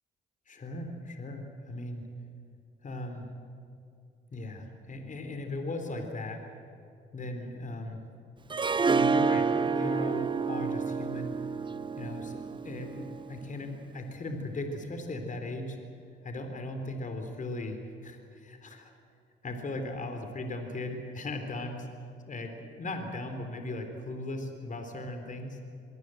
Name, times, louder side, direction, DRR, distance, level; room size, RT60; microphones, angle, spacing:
voice 1, 0.5-2.0 2.8-3.3 4.3-6.4 7.1-8.0 8.9-11.4 12.0-15.8 16.2-18.9 19.4-21.9 22.3-25.6, left 2 dB, 40° left, 6 dB, 3.8 m, -37 dB
Harp, 8.5-13.6, right 5 dB, 25° right, 0.7 m, -29 dB
24.5 x 23.5 x 7.9 m, 2.6 s
cardioid pair, 90°, 20 cm